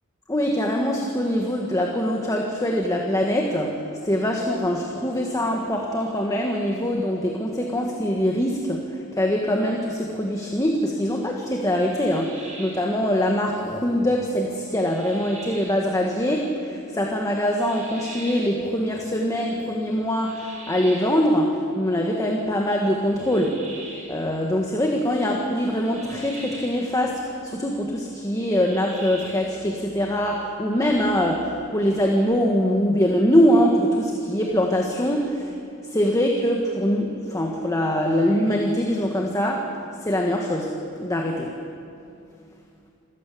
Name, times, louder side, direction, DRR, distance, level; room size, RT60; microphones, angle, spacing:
voice 1, 0.3-23.7 24.1-35.6 35.9-39.7 40.0-41.6, equal, 15° left, 0 dB, 1.8 m, -23 dB
sound 1, 11.9-13.0 14.8-15.8 17.6-18.6 20.2-21.3 23.2-24.2 25.8-26.9 28.5-29.6, right 2 dB, 35° right, 5.7 m, -41 dB
28.0 x 14.5 x 8.6 m, 2.5 s
head